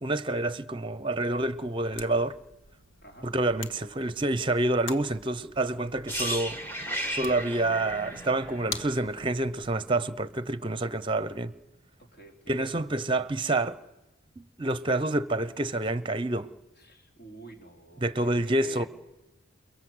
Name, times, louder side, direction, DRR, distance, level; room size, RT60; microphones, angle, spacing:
voice 1, 0.0-2.4 3.2-6.6 7.1-11.5 12.5-13.8 14.4-16.5 18.0-18.8, right 2 dB, 25° right, 0.9 m, -28 dB
sound 1, 1.3-9.8, left 5 dB, 65° left, 1.7 m, -46 dB
sound 2, 6.1-9.9 10.2-10.4, equal, 10° left, 1.9 m, -35 dB
voice 2, 12.1-12.6 16.9-18.9, right 2 dB, 50° left, 4.0 m, -48 dB
29.0 x 22.0 x 8.0 m
head